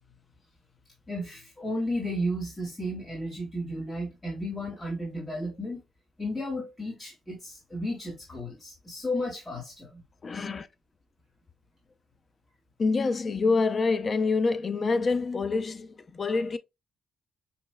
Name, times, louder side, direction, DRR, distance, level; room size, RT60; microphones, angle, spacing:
voice 1, 1.1-5.8 6.2-10.0, equal, 20° left, 2.6 m, -33 dB
voice 2, 10.2-10.7 12.8-16.6, left 4 dB, 35° left, 0.5 m, -26 dB
5.8 x 3.1 x 2.2 m
cardioid pair, 90°, 0 cm